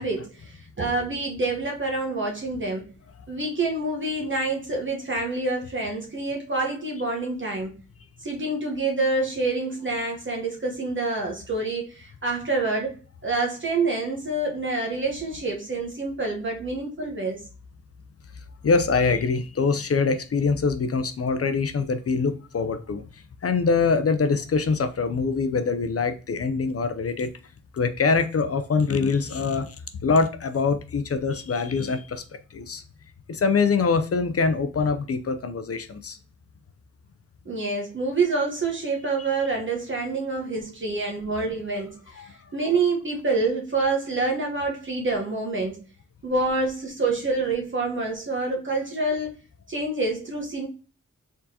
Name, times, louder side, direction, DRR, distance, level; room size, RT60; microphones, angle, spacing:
voice 1, 0.0-2.9 3.3-7.7 8.2-12.9 13.2-17.4 37.4-45.8 46.2-49.3 49.7-50.7, right 3 dB, 40° right, 1.1 m, -27 dB
voice 2, 18.6-27.3 27.7-29.8 30.0-32.2 32.5-32.8 33.3-36.2 39.2-39.3 42.2-42.3, left 4 dB, 50° left, 0.5 m, -24 dB
4.5 x 3.8 x 2.8 m
wide cardioid pair, 85°, 30 cm